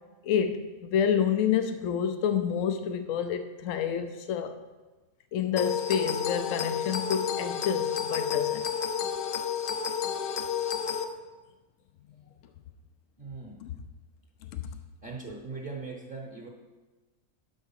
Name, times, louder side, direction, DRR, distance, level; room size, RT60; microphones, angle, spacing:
voice 1, 0.2-4.6 5.3-8.6 13.6-13.7 14.5-14.7, left 8 dB, 75° left, 8 dB, 1.0 m, -28 dB
sound 1, 5.6-11.0, left 8 dB, 55° left, 0.7 m, -31 dB
voice 2, 13.2-13.6 14.6-14.7 15.0-16.5, right 3 dB, 45° right, 0 dB, 1.3 m, -40 dB
12.0 x 4.7 x 5.7 m, 1.2 s
omnidirectional pair, 1.4 m